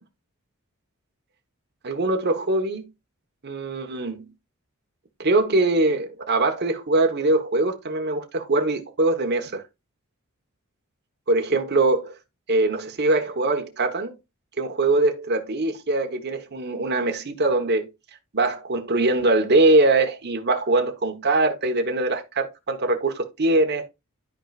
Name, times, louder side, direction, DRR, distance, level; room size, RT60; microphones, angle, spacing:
voice 1, 1.8-2.9 3.4-4.2 5.2-9.6 11.3-12.1 12.5-14.1 14.6-17.9 18.3-23.8, right 2 dB, 50° right, 1.2 m, -22 dB
13.5 x 4.6 x 2.5 m
head